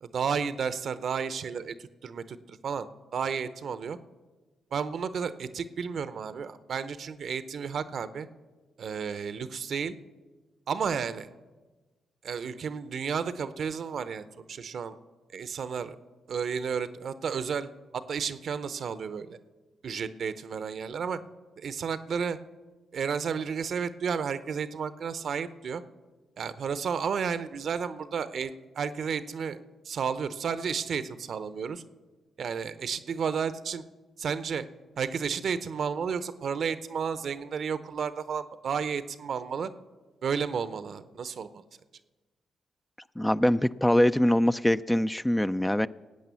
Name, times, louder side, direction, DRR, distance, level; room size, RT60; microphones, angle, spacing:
voice 1, 0.0-4.0 4.7-8.3 8.8-9.9 10.7-11.3 12.2-15.0 15.3-16.0 16.3-19.4 19.8-21.2 21.6-22.4 22.9-25.8 26.4-29.6 29.8-31.8 32.4-33.8 34.2-34.6 35.0-39.7 40.2-41.6, right 6 dB, 60° right, 13 dB, 0.8 m, -32 dB
voice 2, 43.2-45.9, left 1 dB, 10° left, 13 dB, 0.4 m, -23 dB
18.5 x 8.6 x 7.0 m, 1.3 s
hypercardioid pair, 40°, 0 cm